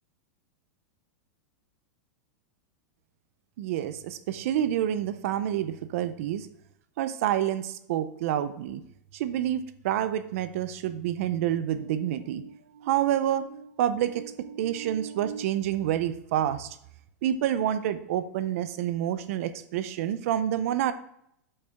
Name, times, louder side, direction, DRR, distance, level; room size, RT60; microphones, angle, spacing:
voice 1, 3.6-6.5 7.0-8.8 9.1-16.7 17.2-20.9, right 11 dB, 55° right, 12 dB, 0.5 m, -28 dB
8.2 x 5.5 x 3.4 m, 0.73 s
supercardioid pair, 165°, 9 cm